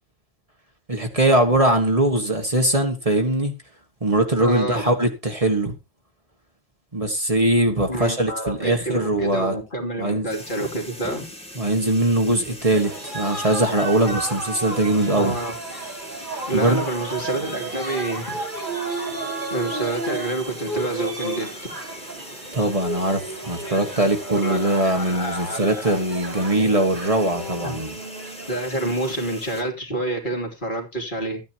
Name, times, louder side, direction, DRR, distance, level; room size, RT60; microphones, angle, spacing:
voice 1, 0.9-3.5 4.0-5.7 6.9-9.6 10.0-10.3 11.6-15.4 16.5-16.8 22.5-27.9, right 1 dB, 35° right, 1.8 m, -21 dB
voice 2, 4.4-4.9 7.9-11.3 15.1-15.5 16.5-18.4 19.5-21.5 24.3-26.0 27.6-27.8 28.5-31.4, right 1 dB, 50° left, 3.1 m, -28 dB
sound 1, 10.3-29.6, equal, 5° left, 2.3 m, -41 dB
sound 2, 12.7-29.1, right 2 dB, 50° right, 5.1 m, -33 dB
14.5 x 9.4 x 2.9 m
omnidirectional pair, 1.1 m